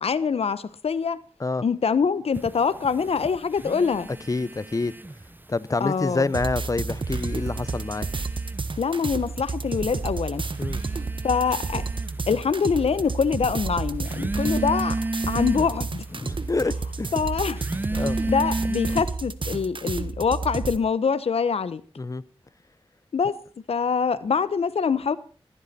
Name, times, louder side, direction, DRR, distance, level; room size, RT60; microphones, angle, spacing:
voice 1, 0.0-1.2 1.6-4.1 5.8-6.3 8.8-10.4 11.2-11.8 12.3-15.0 15.3-16.0 17.1-17.6 18.3-21.8 23.1-23.4 23.7-25.2, left 6 dB, 90° left, 0.9 m, -24 dB
sound 1, 2.3-5.4 5.7-6.5 6.9-19.0, right 2 dB, 20° right, 0.7 m, -33 dB
voice 2, 4.3-4.9 5.5-8.1 10.6-10.8 16.1-17.1 17.9-18.2 22.0-22.2, left 3 dB, 35° left, 0.8 m, -27 dB
sound 2, 6.3-20.8, right 4 dB, 55° right, 1.4 m, -31 dB
20.5 x 15.5 x 4.3 m
wide cardioid pair, 60°, 10 cm